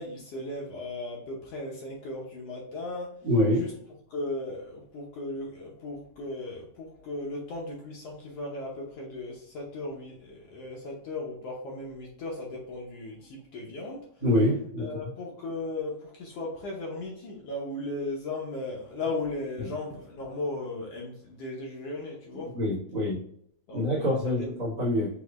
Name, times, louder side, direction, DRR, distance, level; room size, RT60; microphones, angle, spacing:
voice 1, 0.0-3.2 3.5-3.7 4.1-14.0 14.8-22.5 23.7-24.5, left 2 dB, 70° left, -3 dB, 1.6 m, -36 dB
voice 2, 3.2-3.6 14.2-14.9 22.6-23.2 23.7-25.1, left 1 dB, 45° right, -11 dB, 2.1 m, -25 dB
6.1 x 3.0 x 2.4 m, 0.69 s
omnidirectional pair, 3.5 m